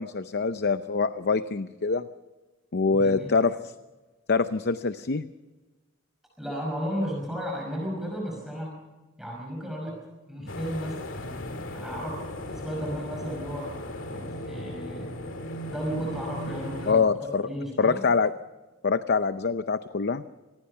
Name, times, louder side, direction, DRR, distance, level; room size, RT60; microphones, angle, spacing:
voice 1, 0.0-2.1 2.7-3.7 4.3-5.2 16.9-17.4 17.8-18.3 18.8-20.2, left 4 dB, 55° left, 11 dB, 0.7 m, -24 dB
voice 2, 2.9-3.3 6.4-8.7 9.2-13.8 14.1-15.2 15.7-18.0, equal, ahead, -2 dB, 5.5 m, -34 dB
sound 1, 10.5-16.9, left 1 dB, 70° left, 2.5 m, -37 dB
26.5 x 19.0 x 5.6 m, 1.2 s
head